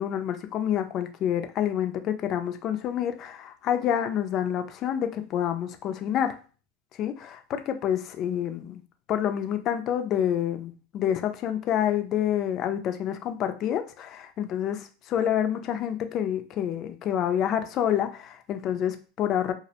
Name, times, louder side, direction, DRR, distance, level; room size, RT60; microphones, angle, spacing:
voice 1, 0.0-6.4 7.0-8.8 9.1-19.5, left 10 dB, 40° left, 7 dB, 0.4 m, -28 dB
2.4 x 2.0 x 2.8 m, 0.37 s
supercardioid pair, 120°, 0 cm